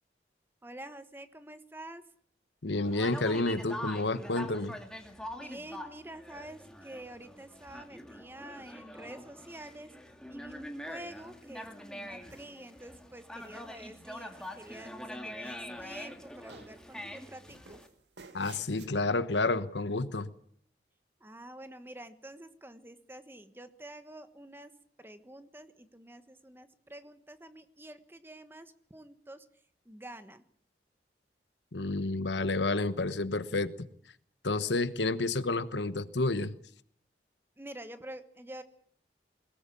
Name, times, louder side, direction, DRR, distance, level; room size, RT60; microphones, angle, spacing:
voice 1, 0.6-2.0 5.4-9.9 10.3-17.8 21.2-24.7 25.0-29.5 29.8-30.4 37.6-38.6, right 1 dB, 10° right, 10 dB, 1.4 m, -48 dB
voice 2, 2.6-4.8 18.3-20.3 31.7-33.9 34.4-36.5, left 2 dB, 85° left, 13 dB, 1.2 m, -30 dB
Conversation, 2.8-17.9, left 1 dB, 5° left, 2.3 m, -44 dB
sound 1, 11.1-11.7 12.3-13.0 13.4-14.0 14.4-15.2 15.4-16.2 16.5-17.0 17.5-18.9, right 4 dB, 80° right, 2.4 m, -56 dB
21.5 x 18.5 x 8.6 m, 0.62 s
head